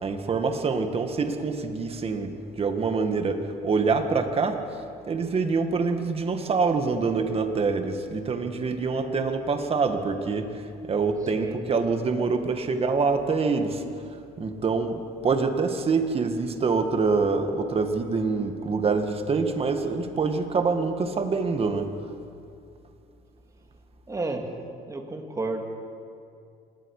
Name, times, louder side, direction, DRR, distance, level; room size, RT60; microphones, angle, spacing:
voice 1, 0.0-4.6 5.1-13.8 14.4-21.9, right 4 dB, 35° right, 6 dB, 1.9 m, -25 dB
voice 2, 24.1-24.5 24.9-25.6, right 2 dB, 20° right, 3 dB, 2.5 m, -31 dB
26.5 x 20.5 x 5.0 m, 2.4 s
cardioid pair, 110°, 17 cm